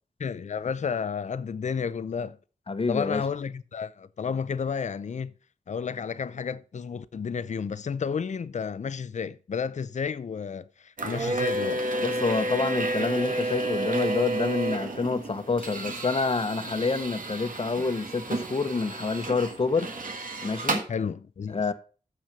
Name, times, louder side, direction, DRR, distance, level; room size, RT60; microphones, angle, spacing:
voice 1, 0.2-2.4 2.9-5.3 5.7-11.9 20.9-21.7, left 6 dB, 55° left, 0.5 m, -32 dB
voice 2, 2.7-3.2 12.0-19.9 20.4-20.9 21.5-21.7, left 4 dB, 40° left, 0.9 m, -27 dB
sound 1, 11.0-20.8, right 2 dB, 70° right, 1.7 m, -31 dB
7.1 x 6.0 x 6.5 m
wide cardioid pair, 115°, 14 cm